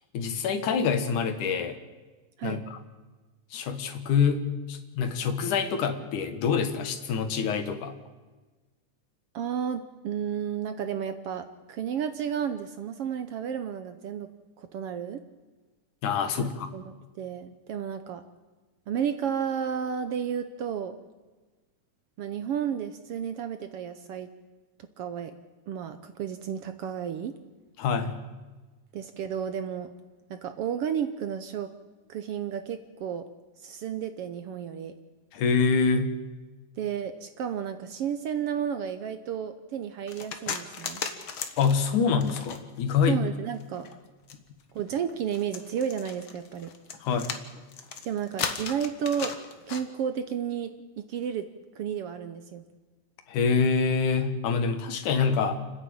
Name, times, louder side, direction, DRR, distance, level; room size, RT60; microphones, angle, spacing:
voice 1, 0.1-1.8 2.4-2.8 3.5-7.9 16.0-16.7 27.8-28.2 35.3-36.1 41.6-43.2 47.0-47.3 53.3-55.6, left 5 dB, 90° left, 8 dB, 3.0 m, -26 dB
voice 2, 9.3-14.3 14.6-15.2 16.4-18.2 18.9-21.0 22.2-24.3 24.8-25.3 25.7-27.3 28.9-29.9 30.3-31.7 32.1-33.3 33.6-34.9 36.8-41.0 43.1-43.9 44.7-46.7 48.0-49.3 49.7-50.7 51.0-51.5 51.7-52.6, right 8 dB, 65° right, 9 dB, 1.5 m, -32 dB
sound 1, 40.1-42.9 43.5-49.8, left 6 dB, 50° left, 1.8 m, -36 dB
30.0 x 10.0 x 8.8 m, 1.3 s
omnidirectional pair, 3.4 m